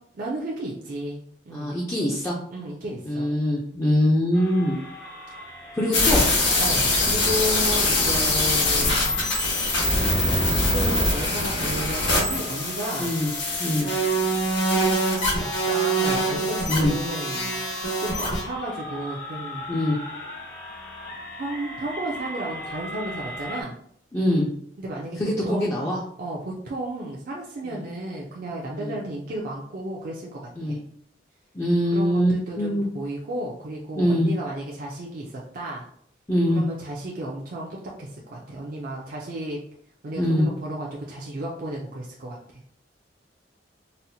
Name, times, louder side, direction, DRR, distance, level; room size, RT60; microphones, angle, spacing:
voice 1, 0.2-1.7 2.5-3.3 6.6-9.1 10.7-13.1 15.4-17.6 18.2-19.6 21.4-23.7 24.8-25.9 26.2-30.4 30.7-30.8 31.9-35.8 36.5-39.6 40.0-42.4, right 1 dB, 50° right, -3 dB, 0.5 m, -33 dB
voice 2, 1.5-2.4 3.0-4.8 5.7-6.3 13.0-13.3 13.6-13.9 16.7-16.9 19.7-20.0 24.1-24.5 25.2-26.0 27.6-27.8 28.7-29.0 30.6-30.8 31.5-32.9 34.0-34.3 36.3-36.6 40.2-40.5, equal, 15° left, -4 dB, 0.4 m, -23 dB
sound 1, 4.3-23.6, left 1 dB, 55° left, 0.8 m, -39 dB
sound 2, 5.9-18.4, left 1 dB, 75° left, 1.3 m, -23 dB
4.1 x 2.1 x 2.7 m, 0.66 s
head